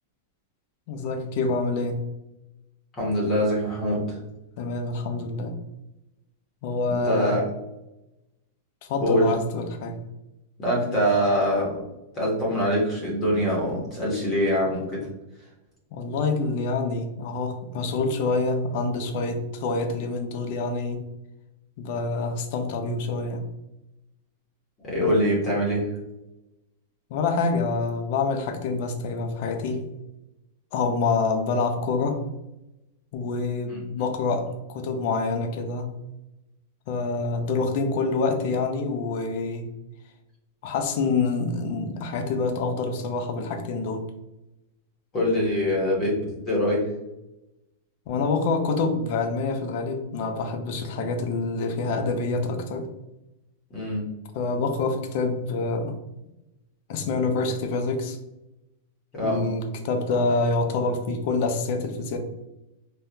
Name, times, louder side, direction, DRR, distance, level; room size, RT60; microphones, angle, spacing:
voice 1, 0.9-2.1 4.6-5.6 6.6-7.4 8.8-10.1 15.9-21.1 21.8-23.5 27.1-29.9 30.7-32.3 33.1-36.0 36.9-39.8 40.6-44.1 48.1-52.9 54.3-56.0 56.9-58.2 59.2-62.2, left 3 dB, 45° left, 5 dB, 0.5 m, -26 dB
voice 2, 3.0-4.2 6.9-7.4 9.0-9.3 10.6-11.8 12.1-15.1 24.8-25.9 33.7-33.8 45.1-46.8 53.7-54.1 59.1-59.4, equal, 20° left, -4 dB, 0.9 m, -24 dB
3.6 x 2.3 x 2.7 m, 0.94 s
supercardioid pair, 170°, 0 cm